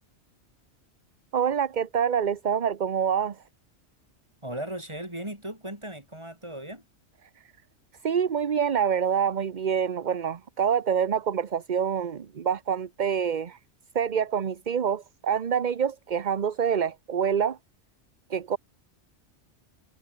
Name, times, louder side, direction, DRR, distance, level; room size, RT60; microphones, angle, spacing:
voice 1, 1.3-3.4 8.0-13.6 13.9-17.6 18.3-18.6, right 7 dB, 45° right, 0.9 m, -26 dB
voice 2, 4.4-6.8, right 1 dB, 25° right, 5.4 m, -37 dB
omnidirectional pair, 1.2 m